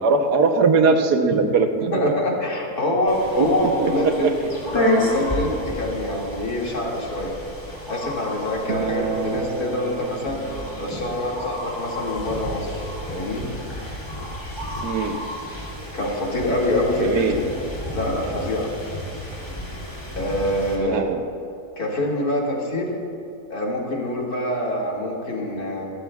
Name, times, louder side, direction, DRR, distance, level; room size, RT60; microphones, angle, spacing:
voice 1, 0.0-2.2 3.4-3.5 3.8-4.1 14.8-15.2 17.0-17.4 20.8-21.2, right 4 dB, 80° right, 5 dB, 1.5 m, -20 dB
voice 2, 1.9-4.3 4.7-7.4 7.9-10.4 10.7-12.8 13.1-13.5 15.9-17.4 17.9-18.7 20.1-21.0 21.8-23.0 23.5-25.9, left 1 dB, 65° left, -3 dB, 2.8 m, -25 dB
sound 1, 3.1-20.8, left 1 dB, 15° left, 2.6 m, -31 dB
Acoustic guitar, 8.7-13.9, right 7 dB, 55° right, 0.9 m, -33 dB
26.5 x 13.0 x 2.4 m, 2.6 s
omnidirectional pair, 1.7 m